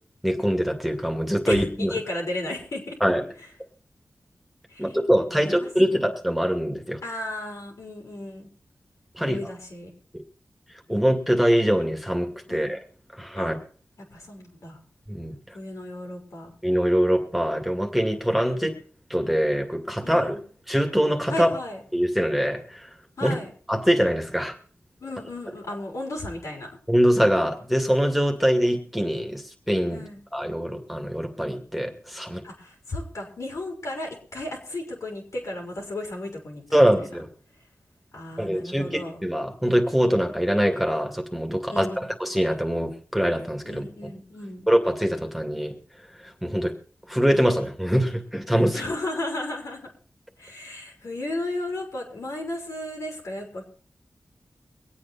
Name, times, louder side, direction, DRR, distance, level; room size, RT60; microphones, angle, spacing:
voice 1, 0.2-1.9 3.0-3.2 4.8-7.0 9.2-9.4 10.9-12.8 13.1-13.6 15.1-15.4 16.6-18.7 19.1-20.4 20.7-21.5 21.9-22.9 23.2-23.4 23.7-24.5 26.9-30.0 30.3-32.4 36.7-37.3 38.4-43.8 44.7-45.7 46.2-46.7 47.1-48.8, equal, ahead, 3 dB, 2.4 m, -23 dB
voice 2, 1.5-3.0 4.7-4.9 5.3-6.0 7.0-8.5 9.3-9.9 12.5-12.7 13.4-13.5 14.1-14.8 15.5-16.5 20.0-20.5 21.3-21.8 23.2-23.5 25.0-26.7 29.9-30.2 32.4-36.9 38.1-39.2 41.7-42.1 43.6-44.7 48.7-49.9 50.4-53.7, left 1 dB, 80° left, 0 dB, 4.5 m, -34 dB
23.5 x 8.5 x 4.2 m, 0.43 s
cardioid pair, 60°, 5 cm